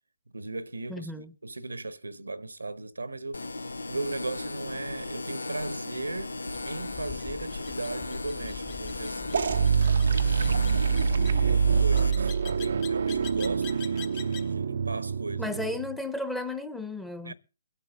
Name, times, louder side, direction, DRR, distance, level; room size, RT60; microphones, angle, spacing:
voice 1, 0.3-3.5 3.9-6.4 6.6-9.4 11.3-15.5 17.2-17.3, right 2 dB, 90° right, 1.0 m, -37 dB
voice 2, 0.9-1.3 15.4-17.3, left 2 dB, 5° left, 0.9 m, -34 dB
sound 1, 3.3-12.1, left 2 dB, 85° left, 0.5 m, -36 dB
sound 2, 6.5-14.5, left 9 dB, 35° left, 1.0 m, -44 dB
sound 3, 9.3-16.0, right 6 dB, 65° right, 0.5 m, -25 dB
22.5 x 8.4 x 3.7 m
figure-of-eight pair, 135°, 0 cm